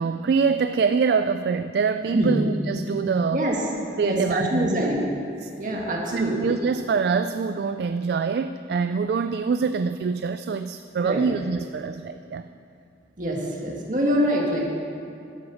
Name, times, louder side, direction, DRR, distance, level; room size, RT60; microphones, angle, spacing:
voice 1, 0.0-3.5 4.0-4.9 5.4-5.5 6.1-12.5, right 5 dB, 65° right, 10 dB, 0.3 m, -25 dB
voice 2, 4.0-5.0 5.6-6.4 11.0-11.2 13.2-14.7, equal, 45° right, -2 dB, 2.0 m, -24 dB
12.0 x 7.7 x 7.1 m, 2.6 s
head